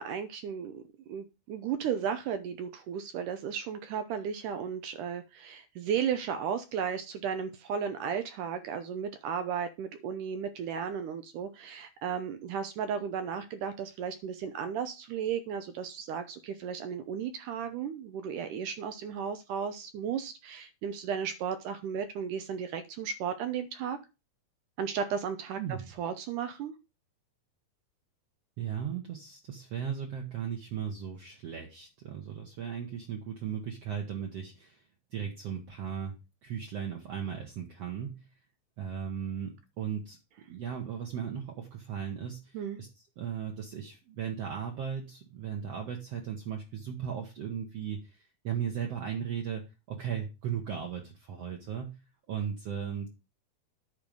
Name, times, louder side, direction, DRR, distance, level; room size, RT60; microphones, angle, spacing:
voice 1, 0.0-24.0 24.8-25.6 26.0-26.7 42.5-42.8, right 7 dB, 75° right, 9 dB, 2.0 m, -34 dB
voice 2, 25.6-25.9 28.6-34.8 35.1-36.1 36.4-38.2 38.8-40.2 40.5-42.9 43.2-49.6 49.9-52.0 52.3-53.1, right 8 dB, 60° right, 1 dB, 1.8 m, -36 dB
10.5 x 4.6 x 5.2 m, 0.28 s
omnidirectional pair, 4.2 m